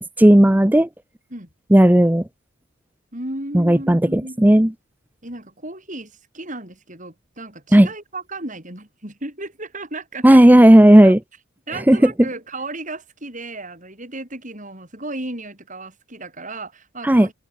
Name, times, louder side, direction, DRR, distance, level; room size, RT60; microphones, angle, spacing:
voice 1, 0.2-0.9 1.7-2.2 3.5-4.7 7.7-7.9 10.2-11.2 11.9-12.1 17.0-17.3, right 1 dB, 10° right, 0.5 m, -12 dB
voice 2, 3.1-4.4 5.2-10.4 11.0-11.1 11.7-17.3, right 2 dB, 35° right, 6.6 m, -34 dB
head